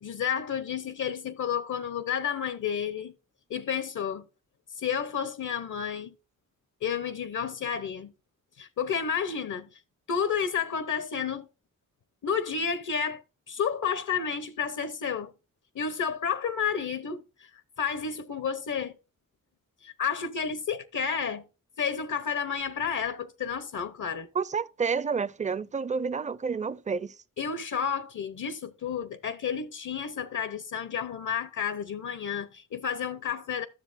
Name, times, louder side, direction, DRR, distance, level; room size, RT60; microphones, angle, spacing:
voice 1, 0.0-3.1 3.5-4.2 4.8-6.1 6.8-8.1 8.6-9.7 10.1-11.5 12.2-13.2 13.5-15.3 15.7-17.5 17.8-19.0 19.8-21.4 21.8-24.3 27.4-33.7, left 7 dB, 70° left, 0.8 m, -31 dB
voice 2, 24.3-27.1, right 5 dB, 25° right, 0.5 m, -29 dB
12.5 x 6.9 x 2.5 m
cardioid pair, 75°, 32 cm